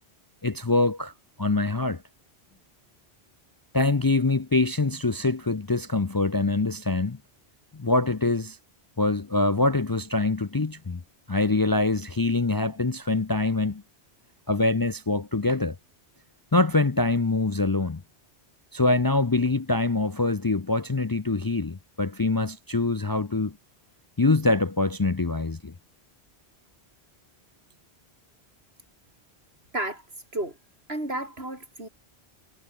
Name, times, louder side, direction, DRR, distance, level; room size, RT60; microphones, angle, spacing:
voice 1, 0.4-1.1 1.4-2.0 3.7-7.2 7.7-8.6 9.0-11.0 11.3-13.8 14.5-15.8 16.5-18.0 18.7-23.6 24.2-25.7, left 3 dB, 25° left, 0.5 m, -24 dB
voice 2, 29.7-30.6 30.9-31.9, right 1 dB, 65° right, 6.5 m, -32 dB
omnidirectional pair, 1.1 m